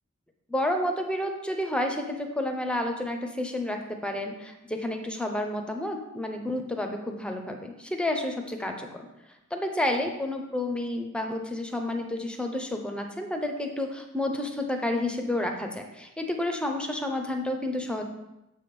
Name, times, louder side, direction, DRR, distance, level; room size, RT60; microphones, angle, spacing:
voice 1, 0.5-9.1 9.5-18.0, left 1 dB, 5° left, 4 dB, 0.6 m, -30 dB
7.1 x 3.4 x 6.0 m, 0.92 s
head